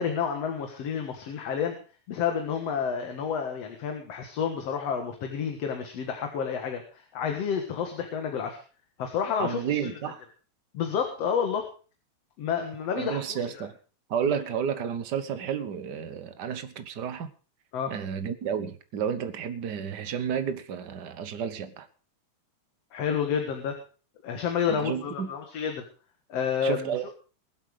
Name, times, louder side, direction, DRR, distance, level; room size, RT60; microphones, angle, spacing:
voice 1, 0.0-1.8 2.1-8.6 9.0-9.9 10.7-11.7 12.4-13.7 17.7-17.9 22.9-23.8 24.2-25.8 26.3-26.9, left 7 dB, 60° left, 2.5 m, -30 dB
voice 2, 9.4-10.2 13.0-13.7 14.1-17.3 17.9-21.9 24.7-25.3 26.6-27.1, right 8 dB, 60° right, 1.1 m, -31 dB
22.0 x 8.0 x 4.9 m
omnidirectional pair, 3.4 m